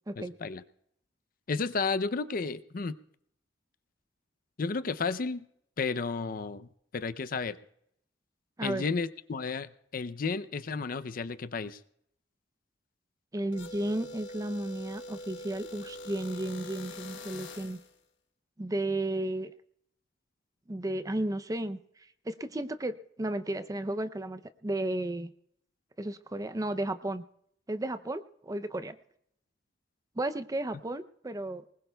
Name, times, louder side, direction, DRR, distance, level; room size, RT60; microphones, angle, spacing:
voice 1, 0.2-0.6 1.5-3.0 4.6-5.4 5.8-6.7 6.9-7.6 8.6-11.8, left 4 dB, 50° left, 13 dB, 0.5 m, -32 dB
voice 2, 13.3-17.8 18.6-19.5 20.7-21.8 22.3-25.3 26.0-27.2 27.7-29.0 30.2-31.6, right 1 dB, 20° right, 11 dB, 0.5 m, -33 dB
sound 1, 13.5-17.9, left 1 dB, 85° left, 1.5 m, -44 dB
23.5 x 20.5 x 2.3 m, 0.71 s
head